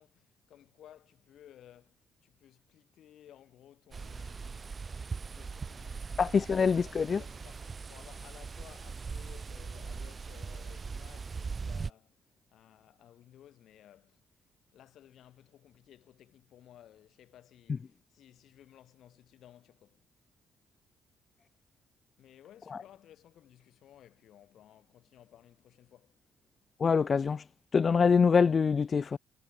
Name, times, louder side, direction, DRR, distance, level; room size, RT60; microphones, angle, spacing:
voice 1, 0.0-12.2 12.5-14.4 14.7-20.0 22.2-26.2, left 11 dB, 75° left, 6.0 m, -58 dB
sound 1, 3.9-11.9, right 5 dB, 35° right, 2.0 m, -40 dB
voice 2, 6.2-7.2 26.8-27.4 27.7-29.2, left 5 dB, 40° left, 0.5 m, -24 dB
cardioid pair, 90°, 0 cm